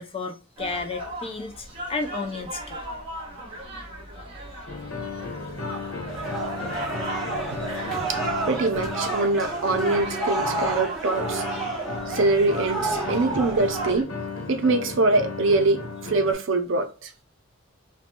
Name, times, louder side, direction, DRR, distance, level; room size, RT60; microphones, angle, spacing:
voice 1, 0.0-2.8 12.9-13.1, left 3 dB, 25° left, 0.4 m, -33 dB
sound 1, 0.6-14.0, right 1 dB, 25° right, 1.0 m, -38 dB
sound 2, 4.7-16.3, left 4 dB, 70° left, 1.0 m, -35 dB
sound 3, 6.1-13.9, right 3 dB, 5° left, 1.0 m, -30 dB
voice 2, 8.5-11.6 12.1-14.2 14.5-17.1, right 2 dB, 60° right, 0.5 m, -24 dB
2.8 x 2.2 x 2.5 m
head